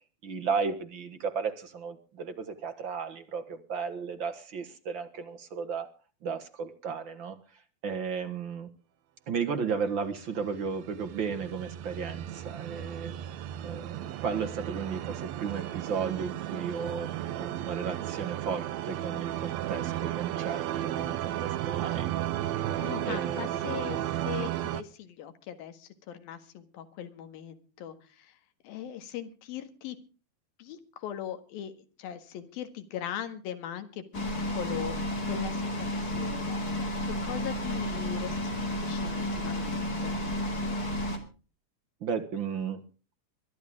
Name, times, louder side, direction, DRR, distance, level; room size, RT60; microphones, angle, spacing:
voice 1, 0.2-5.9 6.2-7.4 7.8-8.7 9.3-13.1 13.6-17.1 17.4-22.3 23.1-23.6 24.4-24.5 42.0-42.8, right 6 dB, 50° right, 8 dB, 1.6 m, -34 dB
sound 1, 10.5-24.8, right 12 dB, 75° right, 1.7 m, -34 dB
voice 2, 22.8-28.4 28.6-30.0 30.6-31.7 32.0-40.2, left 10 dB, 85° left, 9 dB, 3.5 m, -40 dB
sound 2, 34.1-41.2, left 1 dB, 30° left, 2.8 m, -32 dB
23.0 x 12.0 x 3.6 m, 0.35 s
omnidirectional pair, 4.1 m